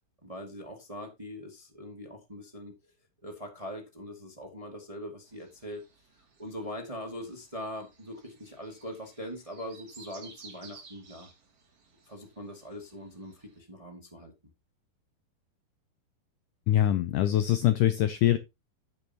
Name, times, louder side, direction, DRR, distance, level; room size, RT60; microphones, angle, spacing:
voice 1, 0.2-2.7 3.2-5.8 6.4-11.3 12.1-14.3, equal, 15° right, 1.2 m, -42 dB
sound 1, 5.3-13.6, right 5 dB, 40° right, 3.1 m, -56 dB
voice 2, 16.7-18.4, left 12 dB, 90° left, 1.8 m, -23 dB
10.5 x 9.7 x 2.9 m
omnidirectional pair, 4.5 m